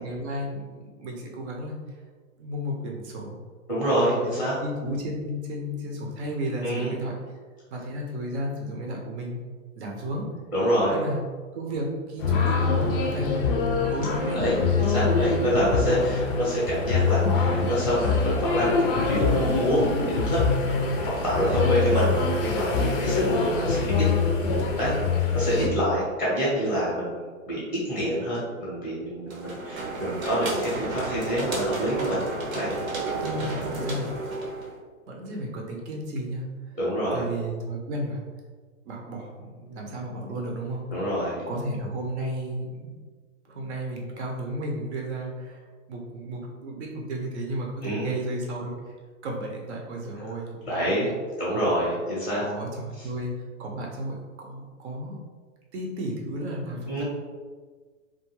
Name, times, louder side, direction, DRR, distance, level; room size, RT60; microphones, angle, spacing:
voice 1, 0.0-1.8 2.4-3.4 3.8-4.3 4.6-7.1 7.7-9.4 9.8-10.3 10.9-11.2 11.5-13.3 13.9-14.7 33.2-34.1 35.1-36.5 37.1-38.2 38.8-40.9 41.5-42.8 43.5-45.6 45.9-48.8 49.2-50.5 50.8-51.1 51.5-51.7 52.4-53.3 53.6-55.2 55.7-57.0, right 1 dB, 55° right, -1 dB, 0.6 m, -33 dB
voice 2, 3.7-4.6 6.6-6.9 10.5-11.0 14.3-20.8 21.0-22.1 22.4-24.1 24.8-24.9 25.3-27.2 27.5-27.6 27.8-32.2 32.5-32.7 36.8-37.2 40.9-41.4 47.8-48.1 50.6-52.4 53.0-53.1 56.9-57.0, equal, 5° right, -8 dB, 0.7 m, -26 dB
sound 1, 12.2-25.7, left 4 dB, 45° left, 0.4 m, -24 dB
sound 2, 29.3-34.8, right 3 dB, 85° right, 0.8 m, -32 dB
2.3 x 2.2 x 3.0 m, 1.5 s
hypercardioid pair, 125°, 40 cm